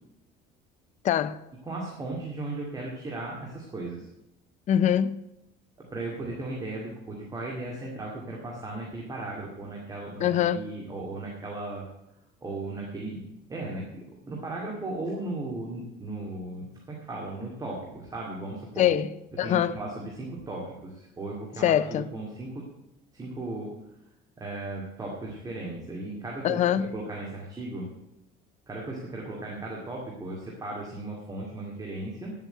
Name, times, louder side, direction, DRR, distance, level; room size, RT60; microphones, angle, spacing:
voice 1, 1.0-1.4 4.7-5.3 10.2-10.7 18.8-19.8 21.6-22.1 26.4-26.9, left 10 dB, 35° left, 0.5 m, -24 dB
voice 2, 1.6-4.1 5.8-11.9 12.4-13.2 13.5-18.9 19.4-22.7 23.1-23.7 24.4-26.6 26.9-27.9 28.7-32.3, right 2 dB, 20° right, 2.2 m, -36 dB
10.0 x 7.4 x 9.0 m
cardioid pair, 150°, 20 cm